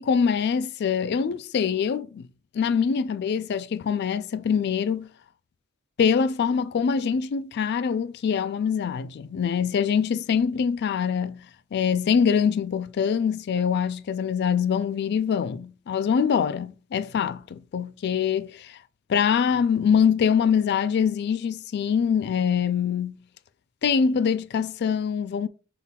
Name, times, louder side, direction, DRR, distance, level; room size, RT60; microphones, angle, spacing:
voice 1, 0.0-2.3 2.5-5.1 6.0-11.4 11.7-18.8 19.1-23.2 23.8-25.5, left 7 dB, 50° left, 0.3 m, -24 dB
5.7 x 4.0 x 2.2 m
head